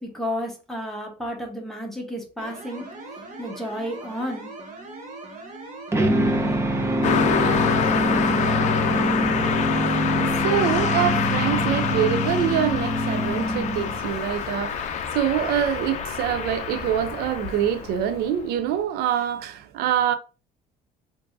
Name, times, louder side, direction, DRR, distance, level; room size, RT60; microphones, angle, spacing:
voice 1, 0.0-2.9 3.4-4.5, equal, ahead, 1.0 m, -32 dB
sound 1, 2.4-9.5, right 2 dB, 50° right, 1.4 m, -40 dB
sound 2, 5.9-14.2, equal, 15° right, 0.6 m, -24 dB
Car passing by, 7.0-18.5, left 7 dB, 45° left, 0.5 m, -27 dB
voice 2, 9.2-20.1, right 9 dB, 75° right, 0.4 m, -25 dB
4.5 x 2.6 x 2.6 m
cardioid pair, 125°, 16 cm